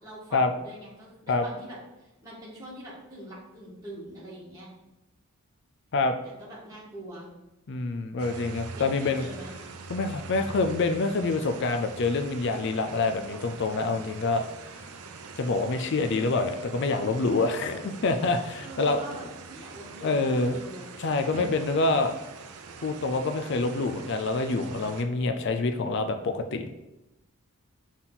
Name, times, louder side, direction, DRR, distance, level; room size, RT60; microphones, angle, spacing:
voice 1, 0.0-4.7 6.4-7.3 8.7-9.5 18.6-20.9, right 1 dB, 15° right, -7 dB, 1.7 m, -43 dB
voice 2, 7.7-9.3 9.9-14.4 15.4-19.0 20.0-20.6 21.0-22.2 22.8-26.7, left 3 dB, 50° left, 7 dB, 0.4 m, -26 dB
sound 1, 8.2-25.0, right 4 dB, 85° right, 0.6 m, -43 dB
6.1 x 3.8 x 4.1 m, 0.97 s
head